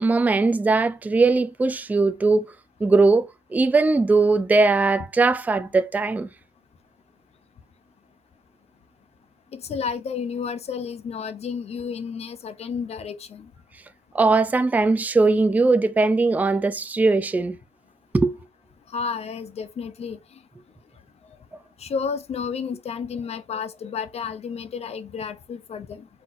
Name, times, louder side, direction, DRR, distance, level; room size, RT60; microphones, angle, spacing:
voice 1, 0.0-2.4 2.8-6.3 14.1-17.6 18.1-18.3, right 3 dB, 10° right, 0.4 m, -20 dB
voice 2, 9.5-13.5 18.9-20.4 21.8-26.1, left 6 dB, 40° left, 0.6 m, -31 dB
4.2 x 4.0 x 2.5 m
cardioid pair, 110°, 17 cm